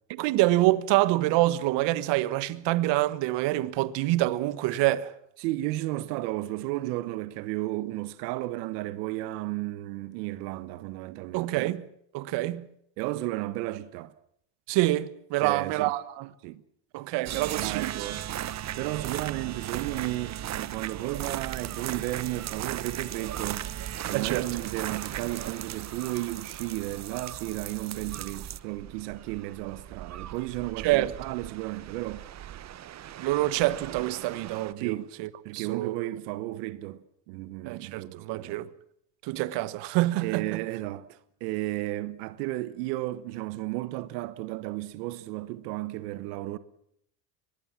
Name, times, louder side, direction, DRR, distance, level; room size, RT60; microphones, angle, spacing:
voice 1, 0.1-5.1 11.3-11.8 12.1-12.7 14.7-16.3 16.9-17.9 24.1-24.5 30.8-31.1 33.2-35.9 37.6-38.7 39.2-40.6, right 17 dB, 65° right, 1.5 m, -26 dB
voice 2, 5.4-11.7 13.0-14.1 15.4-15.9 16.4-16.6 17.5-18.2 18.8-23.7 24.1-32.2 34.8-35.1 35.4-38.6 40.2-46.6, right 17 dB, 85° right, 1.4 m, -33 dB
sound 1, 17.3-34.7, right 11 dB, 35° right, 1.0 m, -37 dB
24.0 x 20.5 x 7.4 m
supercardioid pair, 120°, 46 cm